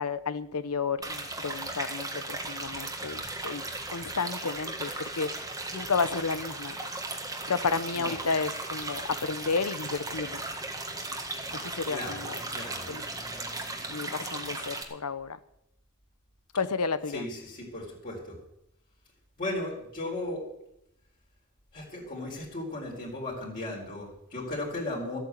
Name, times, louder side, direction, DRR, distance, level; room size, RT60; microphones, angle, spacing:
voice 1, 0.0-3.6 3.9-5.3 5.7-6.8 7.5-10.4 11.5-12.4 12.9-13.0 13.9-15.4 16.5-17.2, left 4 dB, 90° left, 0.9 m, -32 dB
sound 1, 1.0-14.8, right 2 dB, 15° right, 1.7 m, -36 dB
voice 2, 11.9-12.9 17.1-18.4 19.4-20.5 21.7-25.2, left 1 dB, 40° left, 4.1 m, -36 dB
14.0 x 8.9 x 8.2 m
head